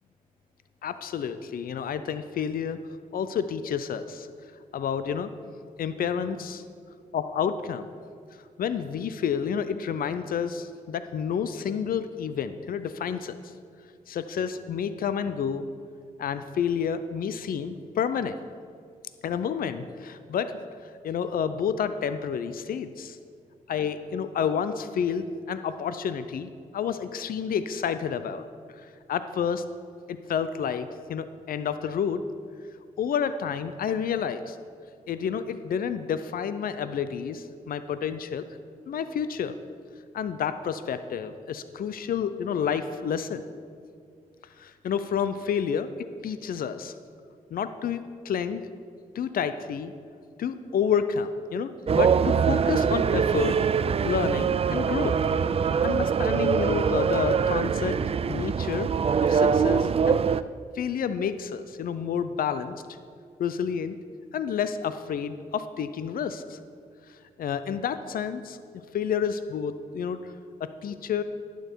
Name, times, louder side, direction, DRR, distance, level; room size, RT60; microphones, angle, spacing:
voice 1, 0.8-2.8 3.1-4.3 4.7-5.3 5.8-6.6 7.1-7.9 8.6-13.4 14.1-15.7 16.2-18.4 19.2-20.6 21.0-23.2 23.7-28.4 28.8-29.6 30.1-32.2 33.0-34.6 35.1-38.5 38.9-39.6 40.1-43.4 44.6-45.9 46.2-46.9 47.5-48.6 49.1-49.9 50.4-53.6 54.0-55.2 55.8-58.0 58.3-58.9 59.2-60.2 60.7-62.8 63.4-64.0 64.3-66.6 67.1-68.6 68.9-70.3 70.6-71.2, left 7 dB, 70° left, 12 dB, 0.5 m, -29 dB
sound 1, 51.9-60.4, right 6 dB, 40° right, 0.4 m, -23 dB
11.5 x 9.1 x 4.6 m, 2.2 s
cardioid pair, 60°, 15 cm